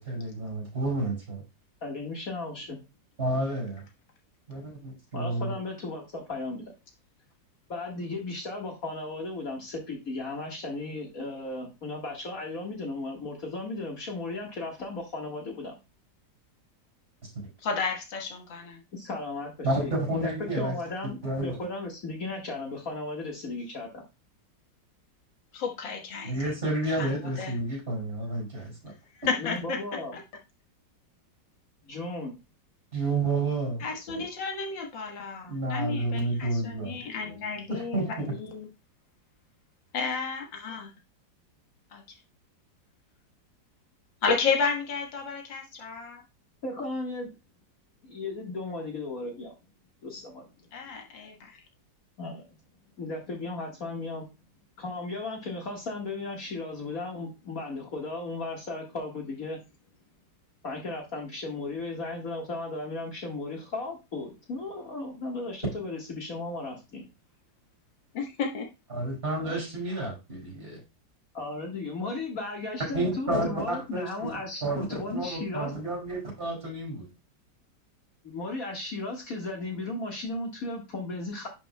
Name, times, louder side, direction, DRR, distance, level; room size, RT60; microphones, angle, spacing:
voice 1, 0.0-1.4 3.2-3.8 4.5-5.5 19.6-20.7 21.0-21.5 26.2-28.9 32.9-33.8 35.5-37.0 37.7-38.3 68.9-70.8 72.9-74.3 74.6-77.1, right 2 dB, 30° right, -3 dB, 5.3 m, -30 dB
voice 2, 1.8-2.8 5.1-6.7 7.7-15.7 18.9-24.0 29.4-30.1 31.8-32.3 46.6-47.3 48.0-49.5 50.0-50.5 52.2-52.4 53.0-54.3 54.8-59.6 60.6-67.0 69.4-69.6 71.3-75.7 78.2-81.5, left 2 dB, 50° left, 0 dB, 2.0 m, -35 dB
voice 3, 17.6-18.8 25.5-26.3 26.9-27.1 27.4-27.5 29.3-29.8 30.1-30.2 33.8-38.7 39.9-40.9 41.9-42.0 44.2-46.2 50.7-51.6 68.1-68.7, left 5 dB, 90° left, 2 dB, 2.1 m, -32 dB
10.5 x 6.1 x 2.2 m, 0.26 s
omnidirectional pair, 2.0 m